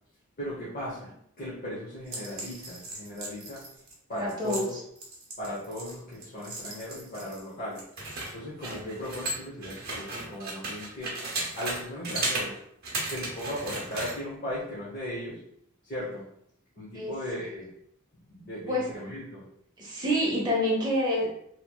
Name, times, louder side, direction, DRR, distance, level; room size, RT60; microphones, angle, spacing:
voice 1, 0.4-1.1 1.4-3.6 4.1-4.8 5.4-7.8 8.3-11.1 11.6-12.6 13.1-15.4 15.8-16.2 16.8-17.7 18.3-19.4, left 1 dB, 40° left, -8 dB, 0.9 m, -37 dB
sound 1, 2.1-7.4 7.7-11.8 12.0-12.5 12.8-14.2, right 2 dB, 50° right, 0.9 m, -35 dB
voice 2, 4.1-4.6 16.9-17.1 18.7-18.9 19.8-21.3, equal, 20° right, -4 dB, 0.9 m, -27 dB
3.0 x 2.9 x 2.3 m, 0.72 s
head